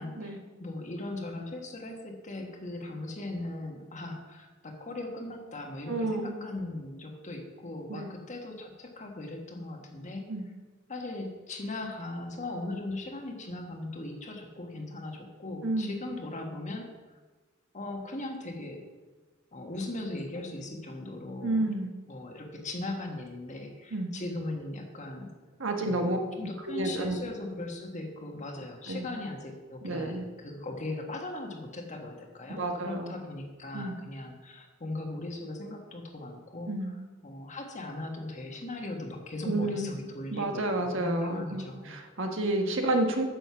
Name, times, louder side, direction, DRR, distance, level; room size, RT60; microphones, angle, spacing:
voice 1, 0.0-10.2 10.9-17.2 17.7-18.8 19.5-21.7 22.1-25.3 25.8-36.7 37.2-41.9, left 2 dB, 35° left, 3 dB, 1.5 m, -39 dB
voice 2, 5.9-6.3 7.9-8.1 10.3-10.4 15.6-15.9 21.4-21.9 23.9-24.1 25.6-26.2 26.7-27.1 28.9-29.1 29.8-30.2 32.5-33.1 33.7-33.9 36.7-36.9 39.4-39.9 40.3-43.2, right 2 dB, 65° right, 4 dB, 1.4 m, -30 dB
9.3 x 6.8 x 7.0 m, 1.3 s
head